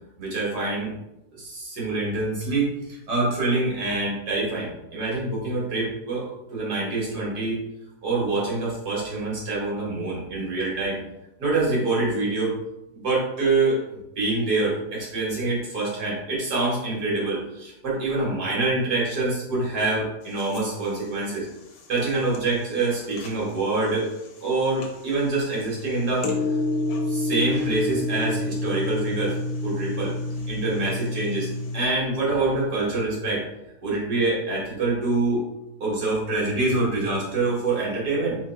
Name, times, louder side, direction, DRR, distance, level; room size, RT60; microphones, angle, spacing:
voice 1, 0.2-0.9 1.3-7.6 8.0-11.0 11.4-12.6 12.9-21.5 21.9-24.1 24.4-26.3 27.1-29.4 29.6-33.5 33.8-35.5 35.8-38.4, right 3 dB, 75° right, -5 dB, 2.2 m, -25 dB
sound 1, 20.2-31.9, left 2 dB, 70° left, 1.2 m, -30 dB
3.8 x 3.1 x 4.5 m, 0.90 s
omnidirectional pair, 1.7 m